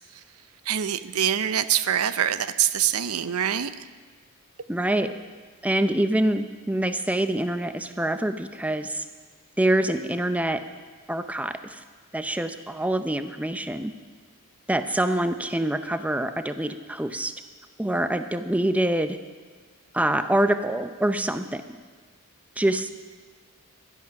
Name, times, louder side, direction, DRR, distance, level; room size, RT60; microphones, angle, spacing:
voice 1, 0.6-3.9, right 10 dB, 75° right, 14 dB, 0.6 m, -25 dB
voice 2, 4.7-5.2 5.6-9.0 9.6-10.6 11.1-11.8 12.1-13.9 14.7-17.3 17.8-19.2 19.9-21.6 22.6-22.9, right 1 dB, 5° right, 9 dB, 0.6 m, -25 dB
16.5 x 12.0 x 5.9 m, 1.5 s
head